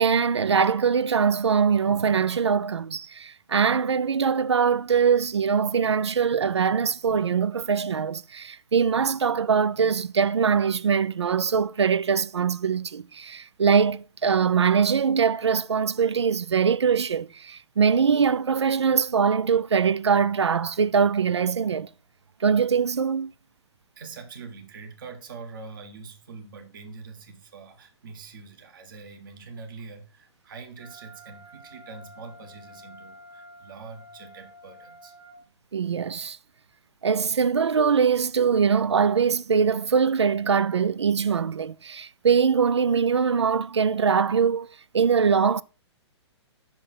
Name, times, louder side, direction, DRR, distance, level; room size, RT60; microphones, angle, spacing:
voice 1, 0.0-21.9 22.4-23.3 35.7-36.4 37.0-44.7 44.9-45.6, right 6 dB, 70° right, 0.4 m, -22 dB
voice 2, 23.9-35.1, right 4 dB, 45° right, 1.4 m, -44 dB
Wind instrument woodwind instrument, 30.8-35.4, equal, 85° right, 3.4 m, -49 dB
5.8 x 5.1 x 5.2 m
figure-of-eight pair, 120°, 15 cm